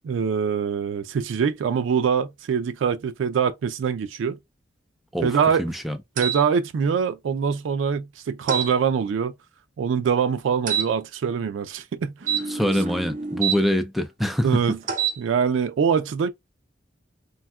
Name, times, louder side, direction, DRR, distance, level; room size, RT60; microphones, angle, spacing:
voice 1, 0.0-4.4 5.2-5.6 6.2-9.3 9.8-12.5 14.4-14.8 15.2-16.3, right 6 dB, 90° right, 0.3 m, -24 dB
voice 2, 5.6-6.0 12.5-14.5, equal, ahead, 0.3 m, -24 dB
sound 1, 6.2-6.4 8.5-8.7 10.7-10.9 12.2-13.6 14.8-15.2, right 8 dB, 45° right, 0.6 m, -26 dB
3.5 x 2.2 x 2.2 m
head